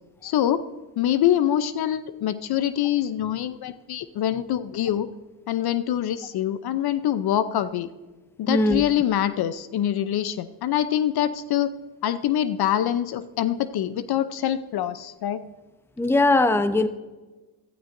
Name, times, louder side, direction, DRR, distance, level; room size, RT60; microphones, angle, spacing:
voice 1, 0.2-0.6 1.0-5.1 5.5-7.9 8.4-11.7 12.0-15.4, left 11 dB, 55° left, 14 dB, 0.7 m, -24 dB
voice 2, 8.5-8.8 16.0-16.9, left 2 dB, 5° left, 11 dB, 0.8 m, -20 dB
15.5 x 13.0 x 2.6 m, 1.2 s
supercardioid pair, 85°, 46 cm